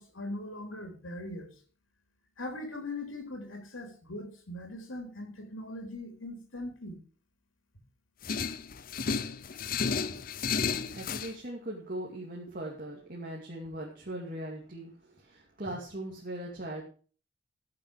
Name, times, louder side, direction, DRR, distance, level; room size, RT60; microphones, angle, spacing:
voice 1, 0.0-1.5 2.4-7.0, left 1 dB, 85° left, 4 dB, 3.4 m, -40 dB
sound 1, 8.2-11.3, left 5 dB, 45° left, 0.6 m, -32 dB
voice 2, 10.9-16.8, right 1 dB, 45° right, -2 dB, 2.5 m, -40 dB
15.5 x 7.6 x 4.8 m, 0.40 s
head